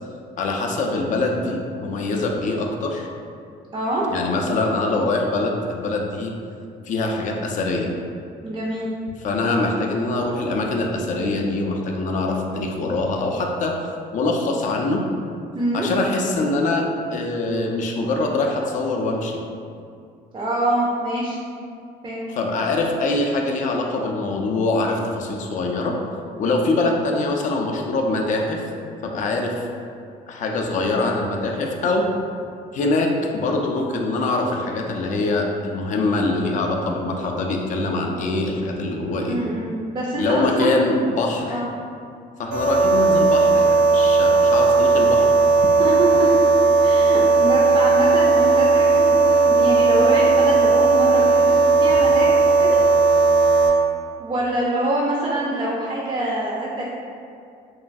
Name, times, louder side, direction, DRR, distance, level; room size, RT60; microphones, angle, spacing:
voice 1, 0.4-3.1 4.1-6.3 6.9-7.9 9.2-13.7 14.1-15.0 15.7-16.8 17.1-19.4 22.3-25.9 26.4-28.6 29.0-29.5 30.3-32.1 32.7-39.4 40.2-41.6 42.4-45.3, left 2 dB, 50° left, 1 dB, 0.4 m, -23 dB
voice 2, 3.7-4.0 8.4-8.9 15.5-15.9 20.3-21.4 22.0-22.3 39.3-40.8 41.5-41.7 45.8-46.3 46.8-52.8 54.2-56.9, right 1 dB, 30° right, -4 dB, 0.4 m, -25 dB
sound 1, 42.5-53.7, right 4 dB, 85° right, 0.7 m, -16 dB
3.0 x 2.2 x 2.5 m, 2.4 s
cardioid pair, 110°, 17 cm